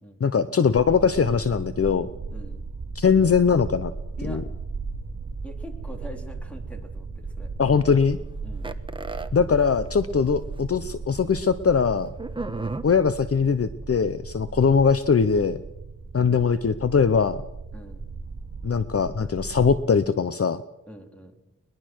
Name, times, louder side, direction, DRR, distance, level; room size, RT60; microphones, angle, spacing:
voice 1, 0.2-2.1 2.9-3.9 4.2-4.4 7.6-8.2 9.3-12.1 12.8-15.6 16.1-17.4 18.6-20.6, left 6 dB, 45° left, 12 dB, 0.8 m, -21 dB
sound 1, 0.8-19.8, right 4 dB, 50° right, 5.4 m, -36 dB
voice 2, 2.3-2.6 4.2-4.4 5.4-7.5 8.4-8.8 12.6-12.8 17.7-18.0 20.9-21.4, equal, 5° left, 3 dB, 3.8 m, -43 dB
sound 2, 8.6-9.3 10.2-10.3 10.6-10.7 12.2-12.8, right 3 dB, 15° right, 1.2 m, -32 dB
22.0 x 21.5 x 6.3 m, 0.92 s
wide cardioid pair, 105°, 32 cm